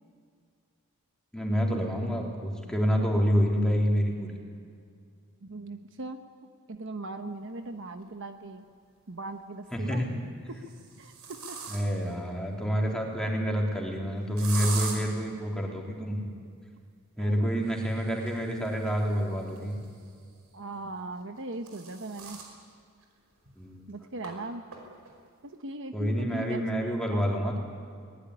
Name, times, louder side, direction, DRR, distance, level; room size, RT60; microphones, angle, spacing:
voice 1, 1.3-4.3 9.7-10.1 11.7-16.2 17.2-19.8 23.6-23.8 25.9-27.6, equal, 5° left, -1 dB, 3.6 m, -28 dB
voice 2, 5.4-6.2 6.7-8.6 9.1-10.1 11.0-11.6 17.2-17.5 17.7-17.9 20.5-22.4 23.9-24.6 25.4-26.6, right 2 dB, 60° right, 7 dB, 1.1 m, -39 dB
sound 1, 8.0-8.1 9.5-10.0 10.5-12.1 14.4-15.0 17.6-20.2 21.2-22.5 23.0-23.1 23.5-23.6 24.2-24.3 24.7-25.1, right 5 dB, 90° right, 5.3 m, -41 dB
23.0 x 20.0 x 9.9 m, 2.2 s
head